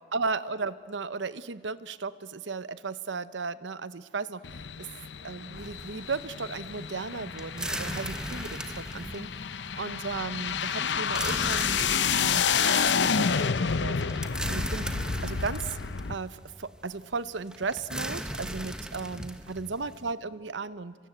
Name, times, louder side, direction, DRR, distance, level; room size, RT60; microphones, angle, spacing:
voice 1, 0.1-4.4 4.8-4.9 5.2-9.3 9.7-14.0 14.5-14.9 15.2-15.8 16.1-21.0, right 4 dB, 85° right, 15 dB, 0.8 m, -35 dB
sound 1, 4.4-16.1, left 6 dB, 75° left, 0.7 m, -30 dB
sound 2, 5.6-20.1, right 1 dB, 5° right, 1.3 m, -38 dB
28.5 x 25.0 x 7.9 m, 2.1 s
head